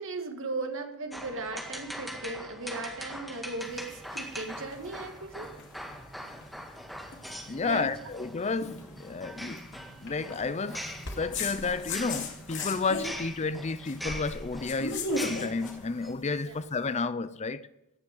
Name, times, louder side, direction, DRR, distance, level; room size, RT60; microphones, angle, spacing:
voice 1, 0.0-5.5 7.5-7.9 16.4-16.6, right 3 dB, 60° right, 2.1 m, -37 dB
sound 1, 1.1-16.1, equal, ahead, 1.9 m, -42 dB
sound 2, 3.6-16.8, left 2 dB, 60° left, 2.5 m, -39 dB
voice 2, 7.5-9.6 10.0-17.7, left 4 dB, 30° left, 0.5 m, -31 dB
17.0 x 7.2 x 9.2 m
head